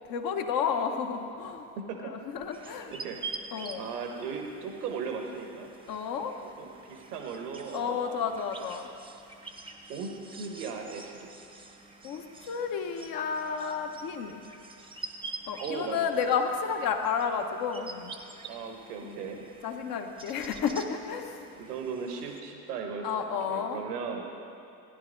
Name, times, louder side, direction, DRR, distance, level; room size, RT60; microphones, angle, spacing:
voice 1, 0.1-1.7 2.0-2.9 3.5-3.9 5.9-6.3 7.7-8.9 12.0-14.4 15.5-18.1 19.0-19.2 19.6-21.5 23.0-23.8, left 6 dB, 45° left, 5 dB, 1.2 m, -31 dB
voice 2, 1.8-2.1 2.6-3.2 3.7-5.7 6.6-8.3 9.9-11.3 15.6-16.1 18.4-19.4 21.6-24.3, right 5 dB, 85° right, 3 dB, 1.3 m, -37 dB
sound 1, 2.5-22.4, right 3 dB, 10° right, 0.9 m, -46 dB
15.0 x 10.0 x 3.9 m, 2.6 s
hypercardioid pair, 90°, 46 cm